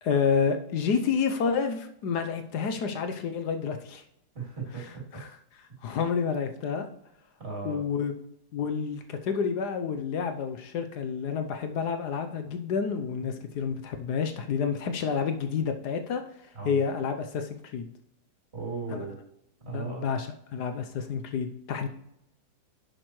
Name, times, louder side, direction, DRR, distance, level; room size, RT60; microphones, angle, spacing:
voice 1, 0.0-4.0 5.1-5.3 5.8-6.9 7.6-8.1 8.5-16.2 16.6-17.9 18.9-19.0 19.6-21.9, left 6 dB, 70° left, 7 dB, 1.4 m, -29 dB
voice 2, 4.3-5.0 7.4-7.8 16.5-16.8 18.5-19.2 19.6-20.1, right 4 dB, 35° right, -3 dB, 3.5 m, -36 dB
11.0 x 7.8 x 3.2 m, 0.78 s
omnidirectional pair, 1.9 m